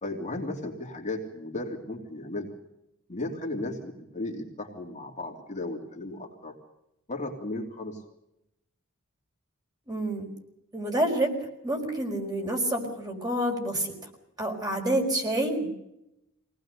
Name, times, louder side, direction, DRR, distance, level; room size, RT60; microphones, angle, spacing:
voice 1, 0.0-2.5 3.1-6.5 7.1-8.0, left 2 dB, 35° left, 0 dB, 3.1 m, -35 dB
voice 2, 9.9-10.3 10.7-11.3 11.6-13.9 14.4-15.7, right 1 dB, 20° right, 2 dB, 5.1 m, -28 dB
23.5 x 19.0 x 6.7 m, 0.87 s
head